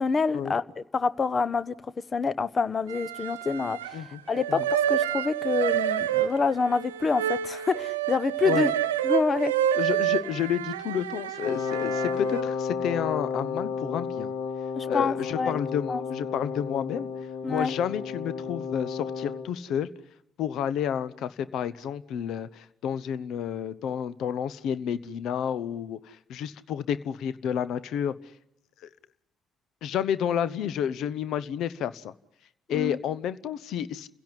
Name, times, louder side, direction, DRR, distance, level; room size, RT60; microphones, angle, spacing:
voice 1, 0.0-1.7 2.1-4.0 4.3-8.7 9.0-9.5 14.8-15.6 15.9-16.0 17.4-17.7 32.7-33.0, left 4 dB, 40° left, 17 dB, 1.1 m, -27 dB
sound 1, 2.9-4.0 4.3-12.4, right 11 dB, 85° right, 0.9 m, -28 dB
voice 2, 9.7-14.3 14.9-17.1 17.5-19.9 20.4-28.1 29.8-32.1 32.7-34.1, left 9 dB, 65° left, 16 dB, 1.0 m, -30 dB
Wind instrument woodwind instrument, 11.4-19.5, left 5 dB, 80° left, 2.3 m, -32 dB
30.0 x 16.5 x 9.9 m, 0.83 s
hypercardioid pair, 45°, 0 cm